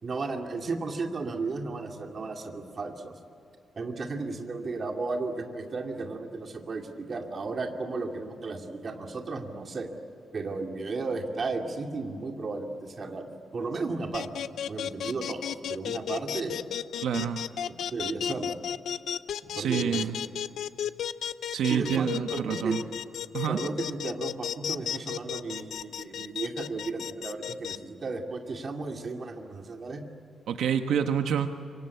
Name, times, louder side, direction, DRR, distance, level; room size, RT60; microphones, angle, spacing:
voice 1, 0.0-3.1 3.8-9.9 10.3-13.2 13.5-14.3 14.7-15.4 15.7-16.6 17.1-17.2 17.7-18.6 19.4-20.1 21.7-22.8 23.5-30.0, right 3 dB, 35° right, 3 dB, 2.4 m, -34 dB
sound 1, 14.1-27.8, left 10 dB, 70° left, 0.6 m, -33 dB
voice 2, 17.0-17.4 19.6-20.2 21.5-22.8 23.3-23.6 30.5-31.5, right 8 dB, 85° right, 6 dB, 1.3 m, -27 dB
26.5 x 24.5 x 8.3 m, 2.6 s
wide cardioid pair, 170°, 0 cm